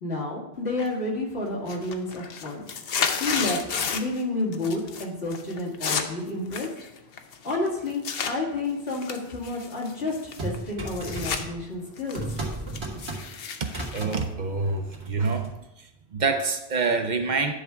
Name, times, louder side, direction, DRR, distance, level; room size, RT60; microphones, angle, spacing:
voice 1, 0.0-2.6 3.2-6.7 7.4-12.2, left 2 dB, 90° left, -4 dB, 2.3 m, -30 dB
sound 1, 0.8-1.2 1.5-4.2 4.5-5.0 5.3-8.3 8.9-11.4 11.8-15.0, left 6 dB, 70° left, 0.9 m, -32 dB
sound 2, 10.4-11.7 12.1-13.4 13.6-14.2 14.6-15.5, right 2 dB, 85° right, 1.7 m, -35 dB
voice 2, 13.6-15.5 15.8-17.5, right 4 dB, 50° right, 6 dB, 0.7 m, -27 dB
10.0 x 3.6 x 5.6 m, 0.91 s
omnidirectional pair, 1.0 m